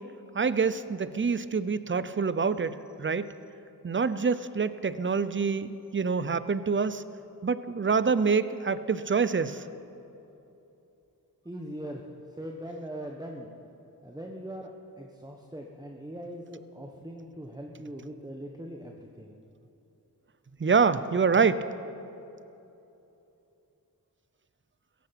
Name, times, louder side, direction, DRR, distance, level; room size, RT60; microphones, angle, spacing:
voice 1, 0.3-3.3 3.8-7.0 7.4-9.6 20.6-21.7, right 5 dB, 30° right, 14 dB, 0.7 m, -26 dB
voice 2, 11.4-12.0 12.4-13.5 14.0-14.7 15.0-19.3, equal, 10° right, 1 dB, 1.2 m, -41 dB
16.5 x 15.0 x 5.9 m, 2.9 s
cardioid pair, 50°, 36 cm